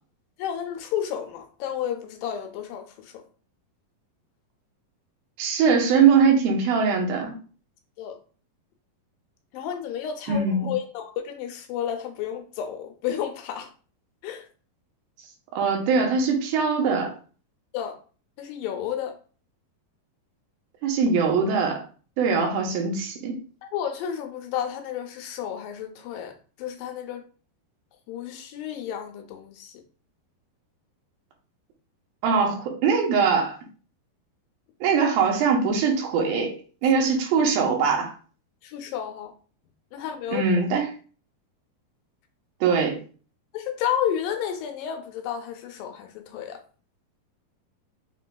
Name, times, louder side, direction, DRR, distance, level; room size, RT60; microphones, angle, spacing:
voice 1, 0.4-3.2 8.0-8.2 9.5-13.7 14.2-14.5 17.7-18.0 18.4-19.2 23.6-27.3 28.1-29.8 38.6-39.3 39.9-40.5 43.5-46.6, left 9 dB, 80° left, 2.2 m, -31 dB
voice 2, 5.4-7.3 10.3-10.7 15.5-17.1 20.8-21.8 22.2-23.4 32.2-33.6 34.8-36.6 36.8-38.1 40.3-40.9 42.6-43.0, right 5 dB, 75° right, 2.7 m, -22 dB
6.0 x 3.7 x 2.2 m
omnidirectional pair, 4.3 m